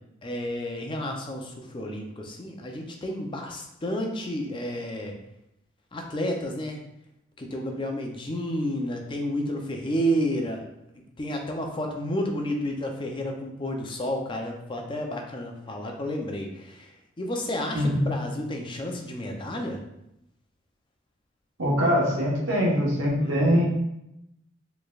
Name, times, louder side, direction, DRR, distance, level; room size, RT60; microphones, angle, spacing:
voice 1, 0.2-5.1 5.9-6.8 7.4-10.6 11.2-19.8 23.2-23.6, equal, 25° left, 2 dB, 0.5 m, -31 dB
voice 2, 21.6-23.6, equal, 80° right, -4 dB, 1.2 m, -23 dB
4.4 x 3.2 x 2.3 m, 0.84 s
head